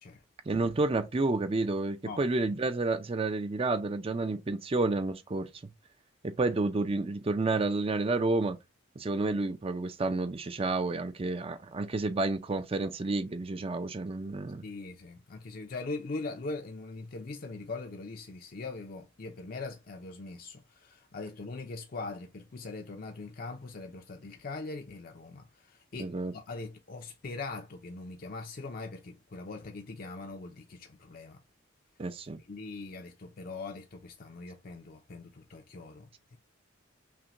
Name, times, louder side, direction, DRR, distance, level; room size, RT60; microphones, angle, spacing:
voice 1, 0.5-5.5 6.2-8.6 9.0-14.6 26.0-26.3 32.0-32.4, right 3 dB, 30° right, 0.5 m, -30 dB
voice 2, 14.6-31.4 32.5-36.4, left 3 dB, 45° left, 0.5 m, -41 dB
5.7 x 2.2 x 2.6 m
head